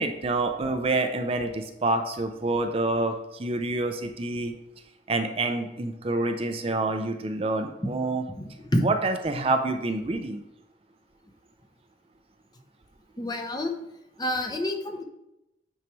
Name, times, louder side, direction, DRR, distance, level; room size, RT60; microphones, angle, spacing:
voice 1, 0.0-4.6 5.1-8.2 8.8-10.4, right 2 dB, 35° right, 6 dB, 0.5 m, -27 dB
voice 2, 8.3-8.8 13.2-13.7 14.2-15.0, left 1 dB, 25° left, 4 dB, 0.8 m, -28 dB
8.9 x 4.7 x 3.1 m, 0.88 s
head